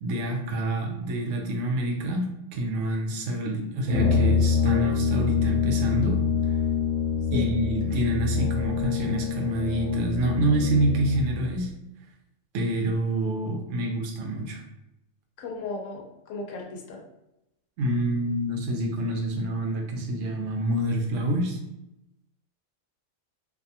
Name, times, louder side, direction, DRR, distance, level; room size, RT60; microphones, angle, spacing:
voice 1, 0.0-6.2 7.3-11.7 12.5-14.6 17.8-21.6, right 1 dB, 75° right, 2 dB, 0.9 m, -27 dB
Brass instrument, 3.9-11.3, left 6 dB, 40° left, 1.2 m, -25 dB
voice 2, 15.4-17.0, left 3 dB, 75° left, 0 dB, 1.0 m, -36 dB
2.6 x 2.2 x 2.7 m, 0.87 s
omnidirectional pair, 1.3 m